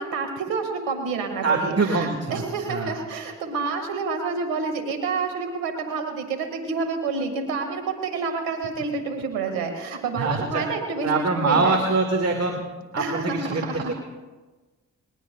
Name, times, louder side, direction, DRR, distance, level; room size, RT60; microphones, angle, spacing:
voice 1, 0.0-11.8 13.0-13.9, right 4 dB, 90° right, 5 dB, 2.0 m, -28 dB
voice 2, 1.4-2.4 2.7-2.9 10.2-10.7 11.0-12.6 12.9-13.9, right 3 dB, 45° right, 3 dB, 1.9 m, -24 dB
20.5 x 19.0 x 2.3 m, 1.2 s
hypercardioid pair, 40°, 34 cm